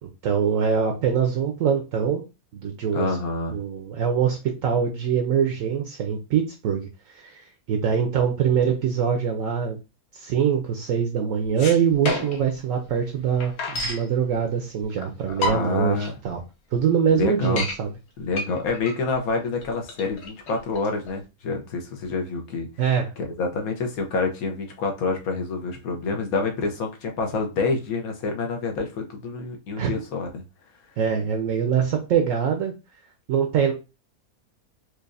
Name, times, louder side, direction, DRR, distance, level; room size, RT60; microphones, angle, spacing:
voice 1, 0.0-2.2 2.5-3.1 3.5-6.9 7.1-9.8 10.1-16.4 16.7-17.9 22.8-23.1 29.8-29.9 31.0-32.7 33.3-33.7, right 7 dB, 70° right, 3 dB, 0.9 m, -23 dB
voice 2, 2.9-3.6 15.4-16.1 17.1-17.7 18.2-22.7 23.2-30.4, left 3 dB, 70° left, 3 dB, 1.3 m, -27 dB
sound 1, 11.4-12.5 12.9-13.0 13.2-14.1 14.8-14.9 15.3-15.9 16.4-16.5 16.7-16.8 17.2-17.8 18.3-21.2, left 2 dB, 50° left, 1.0 m, -29 dB
4.6 x 2.5 x 2.5 m, 0.28 s
omnidirectional pair, 1.6 m